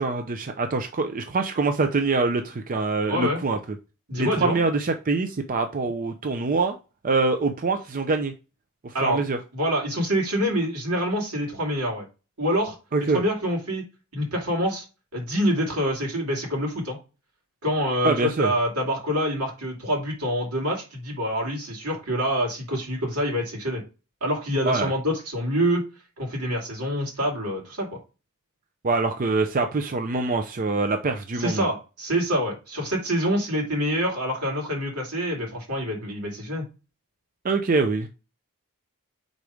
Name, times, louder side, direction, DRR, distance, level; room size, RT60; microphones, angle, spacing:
voice 1, 0.0-3.6 4.2-6.8 7.0-8.3 8.8-9.4 12.9-13.2 18.0-18.5 24.6-24.9 28.8-31.7 37.4-38.1, right 3 dB, 40° right, 6 dB, 0.5 m, -24 dB
voice 2, 3.1-3.4 4.1-4.6 8.9-9.2 9.5-12.1 12.4-12.7 13.1-13.8 14.1-14.8 15.1-17.0 17.6-23.8 24.2-25.8 26.2-27.9 31.4-36.6, equal, 80° right, 0 dB, 2.7 m, -26 dB
4.8 x 4.0 x 4.9 m, 0.31 s
head